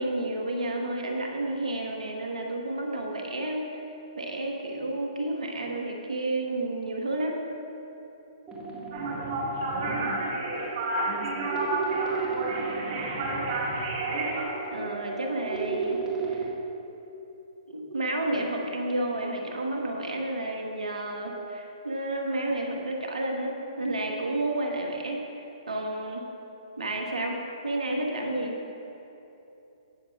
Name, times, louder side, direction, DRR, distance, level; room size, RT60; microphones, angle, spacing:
voice 1, 0.0-3.7 4.2-7.4 14.7-16.5 17.7-26.2 26.8-28.5, right 1 dB, 80° right, 1 dB, 1.4 m, -31 dB
sound 1, 8.5-16.5, right 5 dB, 15° right, 1.8 m, -35 dB
sound 2, 8.9-14.4, right 2 dB, 45° right, 1.9 m, -30 dB
voice 2, 9.7-13.3, left 2 dB, 55° left, 2 dB, 1.3 m, -43 dB
18.5 x 6.6 x 2.4 m, 3.0 s
figure-of-eight pair, 130°, 4 cm